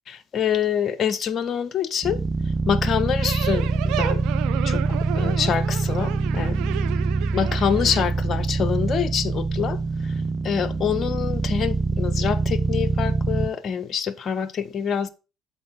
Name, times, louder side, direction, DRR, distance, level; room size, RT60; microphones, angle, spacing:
voice 1, 0.1-2.2 2.7-4.2 4.6-6.6 7.3-10.1 10.4-15.1, left 7 dB, 45° left, 0.5 m, -26 dB
sound 1, 2.0-13.5, right 3 dB, 15° right, 0.6 m, -24 dB
sound 2, 3.2-8.0, right 12 dB, 70° right, 0.6 m, -32 dB
7.5 x 4.2 x 4.4 m
hypercardioid pair, 60°, 0 cm